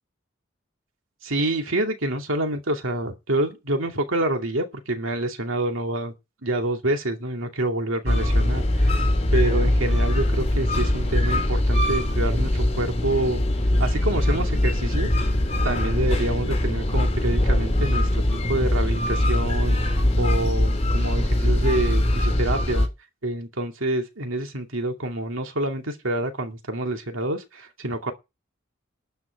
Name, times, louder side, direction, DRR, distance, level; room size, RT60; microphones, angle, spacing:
voice 1, 1.2-6.1 6.4-9.0 9.3-13.4 13.8-15.1 15.6-18.2 18.5-19.8 20.2-22.9 23.2-28.1, right 1 dB, 80° right, 2.5 m, -27 dB
sound 1, 8.1-22.9, left 1 dB, 35° left, 3.7 m, -22 dB
12.5 x 5.9 x 9.2 m
head